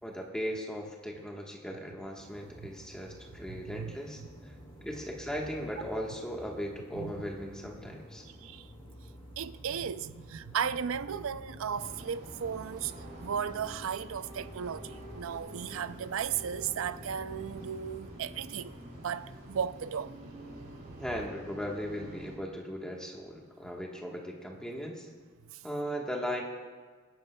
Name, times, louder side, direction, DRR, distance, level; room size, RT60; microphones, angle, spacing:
voice 1, 0.0-4.5 4.8-8.2 21.0-25.1 25.6-26.4, equal, 5° left, 1.3 m, -38 dB
sound 1, 2.2-17.8, equal, 25° left, 1.9 m, -51 dB
voice 2, 3.5-3.9 4.2-4.3 6.9-7.1 8.4-8.7 9.4-12.9 13.2-20.1 25.5-25.6, right 7 dB, 65° right, 0.4 m, -35 dB
sound 2, 11.7-22.4, right 1 dB, 45° right, 3.6 m, -47 dB
23.5 x 11.5 x 2.3 m
head